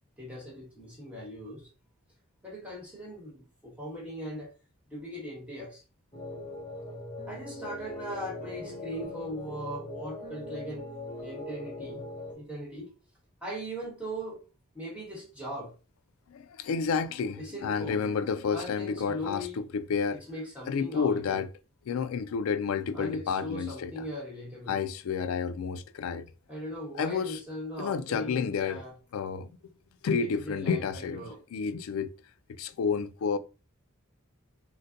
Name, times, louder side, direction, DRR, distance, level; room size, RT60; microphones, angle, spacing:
voice 1, 0.2-1.7 2.4-4.5 4.9-5.8 7.3-10.9 11.2-12.0 12.3-12.9 13.4-14.4 14.7-15.7 17.4-18.1 18.5-19.6 20.1-21.4 22.9-24.8 26.5-28.9 30.2-31.4, equal, 5° right, 1.2 m, -39 dB
sound 1, 6.1-12.3, left 2 dB, 25° left, 0.7 m, -40 dB
voice 2, 16.3-20.2 20.7-21.5 21.9-24.1 24.7-26.3 27.0-27.4 27.8-28.8 29.1-29.5 30.0-31.2 31.5-32.1 32.6-33.4, left 6 dB, 75° left, 0.3 m, -30 dB
3.9 x 2.1 x 2.5 m
head